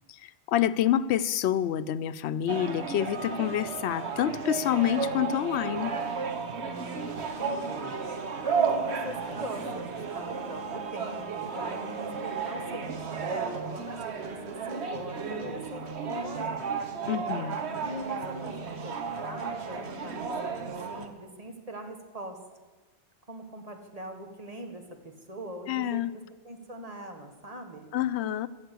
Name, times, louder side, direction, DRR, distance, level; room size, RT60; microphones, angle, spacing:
voice 1, 0.1-6.0 17.0-17.6 25.7-26.1 27.9-28.5, left 11 dB, 80° left, 15 dB, 0.8 m, -27 dB
sound 1, 2.5-21.1, right 5 dB, 80° right, 1.3 m, -33 dB
voice 2, 6.6-7.9 8.4-16.6 17.8-22.4 23.3-26.0 26.4-27.9, right 1 dB, 35° right, 4 dB, 1.5 m, -41 dB
14.0 x 7.4 x 8.3 m, 1.3 s
omnidirectional pair, 1.1 m